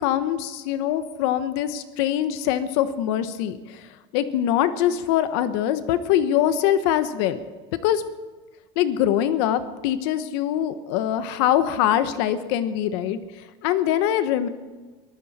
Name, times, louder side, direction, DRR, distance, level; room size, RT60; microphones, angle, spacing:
voice 1, 0.0-3.9 4.1-7.4 7.8-8.0 8.8-13.2 13.6-14.5, left 11 dB, 80° left, 11 dB, 1.2 m, -23 dB
23.0 x 14.0 x 4.4 m, 1.3 s
cardioid pair, 145°, 13 cm